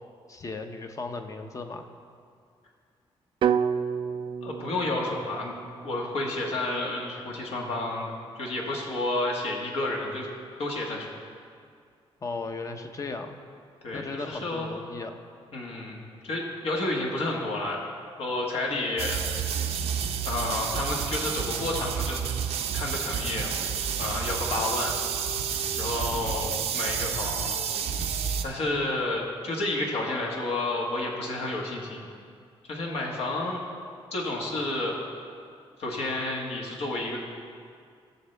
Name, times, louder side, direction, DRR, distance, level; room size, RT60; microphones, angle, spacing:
voice 1, 0.3-1.9 12.2-13.4 13.9-15.2, left 3 dB, 30° left, 6 dB, 0.8 m, -36 dB
sound 1, 3.4-7.5, right 7 dB, 55° right, 0.4 m, -31 dB
voice 2, 4.4-5.6 5.8-10.3 10.6-11.1 13.8-14.8 15.5-17.8 18.2-19.2 20.2-22.2 22.7-23.5 24.0-24.9 25.8-27.6 28.4-32.1 32.7-33.6 34.1-35.0 35.8-37.2, left 2 dB, 75° left, -2 dB, 1.6 m, -30 dB
sound 2, 19.0-28.4, right 7 dB, 85° right, 0.7 m, -30 dB
16.5 x 6.8 x 3.4 m, 2.2 s
cardioid pair, 125°, 10 cm